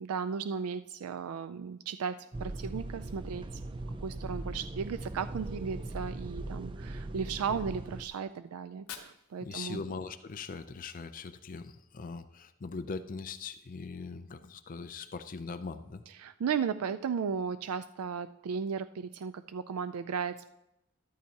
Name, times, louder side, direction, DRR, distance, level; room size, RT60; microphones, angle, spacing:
voice 1, 0.0-3.6 4.0-9.8 16.2-20.5, right 6 dB, 90° right, 12 dB, 0.4 m, -35 dB
sound 1, 2.3-8.0, right 2 dB, 25° right, 0.4 m, -40 dB
Fire, 8.6-10.6, left 8 dB, 80° left, 1.1 m, -50 dB
voice 2, 9.4-16.0, left 4 dB, 40° left, 11 dB, 0.4 m, -41 dB
13.0 x 12.5 x 2.8 m, 0.88 s
head